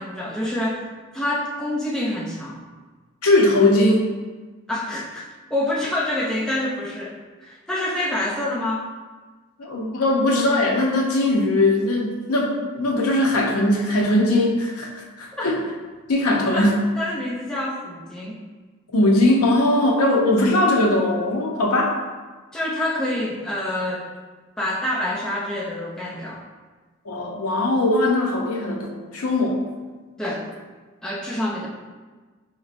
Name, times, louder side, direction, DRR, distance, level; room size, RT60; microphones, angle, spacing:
voice 1, 0.0-2.6 4.7-8.9 15.3-15.5 16.5-18.4 22.5-24.1 24.6-26.4 30.2-30.5 31.0-31.7, left 1 dB, 5° left, -5 dB, 0.3 m, -27 dB
voice 2, 3.2-4.1 9.6-14.9 15.2-15.6 16.1-16.8 18.9-22.0 27.0-29.6, left 1 dB, 80° left, -1 dB, 0.7 m, -20 dB
4.4 x 3.0 x 2.4 m, 1.3 s
head